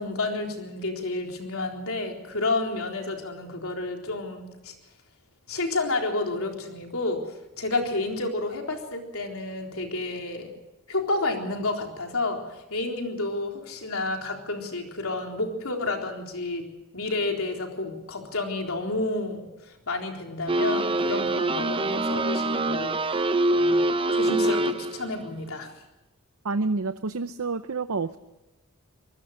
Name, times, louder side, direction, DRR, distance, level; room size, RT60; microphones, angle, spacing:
voice 1, 0.0-4.7 5.5-10.5 10.9-16.7 16.9-23.0 23.5-25.7, left 2 dB, 70° left, 2 dB, 3.9 m, -30 dB
sound 1, 20.5-25.1, right 2 dB, 25° right, 0.6 m, -24 dB
voice 2, 26.4-28.2, right 3 dB, 70° right, 11 dB, 0.7 m, -28 dB
25.5 x 20.0 x 6.5 m, 1.0 s
head